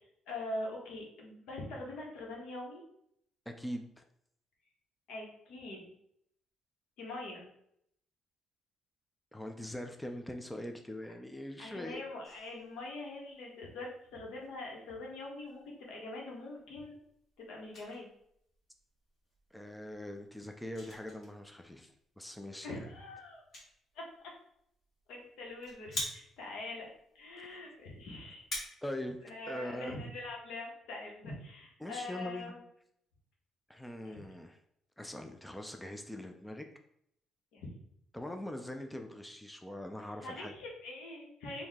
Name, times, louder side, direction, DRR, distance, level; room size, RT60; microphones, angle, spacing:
voice 1, 0.3-2.8 5.1-5.9 7.0-7.5 11.6-17.0 17.4-18.1 22.6-23.4 23.9-24.3 25.1-26.9 27.1-28.4 29.2-32.6 34.0-34.2 37.5-37.7 40.2-41.7, left 2 dB, 85° left, -1 dB, 1.4 m, -43 dB
voice 2, 3.5-4.0 9.3-12.0 19.5-22.9 27.4-27.6 28.8-29.2 29.5-29.9 31.8-32.5 33.7-34.6 35.0-36.7 38.1-40.5, left 1 dB, 5° left, 4 dB, 0.3 m, -42 dB
sound 1, 12.2-28.6, left 1 dB, 40° left, 1.5 m, -48 dB
4.7 x 2.7 x 3.5 m, 0.73 s
cardioid pair, 145°, 0 cm